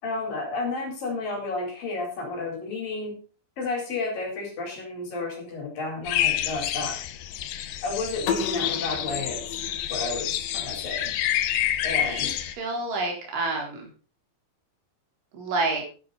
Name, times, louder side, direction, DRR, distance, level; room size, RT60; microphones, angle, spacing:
voice 1, 0.0-3.2 3.6-7.0 7.8-11.2 11.8-12.4, left 3 dB, 50° left, 2 dB, 5.7 m, -32 dB
sound 1, 6.0-12.5, left 12 dB, 90° left, 1.9 m, -28 dB
sound 2, 8.3-11.1, left 5 dB, 75° left, 3.9 m, -33 dB
voice 2, 12.1-13.9 15.3-15.8, right 3 dB, 80° right, 0 dB, 6.7 m, -29 dB
13.0 x 11.5 x 4.2 m, 0.36 s
omnidirectional pair, 5.4 m